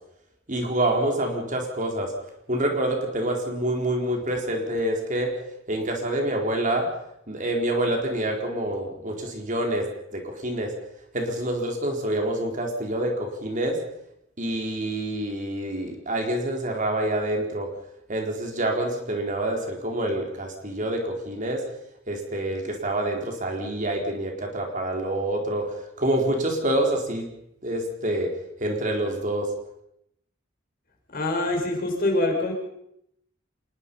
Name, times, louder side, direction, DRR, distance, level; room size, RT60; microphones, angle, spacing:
voice 1, 0.5-2.1 2.5-5.3 5.7-6.9 7.3-10.7 11.1-13.8 14.4-17.7 18.1-21.6 22.1-27.3 27.6-28.3 28.6-29.5, right 1 dB, 40° right, 2 dB, 4.4 m, -27 dB
voice 2, 31.1-32.5, left 2 dB, 50° left, 2 dB, 6.0 m, -24 dB
26.5 x 21.0 x 5.6 m, 0.77 s
head